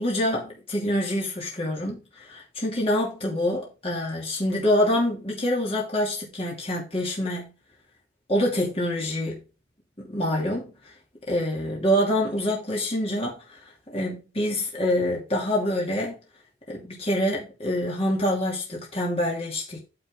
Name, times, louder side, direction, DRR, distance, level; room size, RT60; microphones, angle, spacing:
voice 1, 0.0-7.5 8.3-9.4 10.0-10.7 11.3-13.6 13.9-16.2 16.7-19.8, left 1 dB, 30° left, 2.6 m, -26 dB
9.4 x 6.8 x 3.7 m
head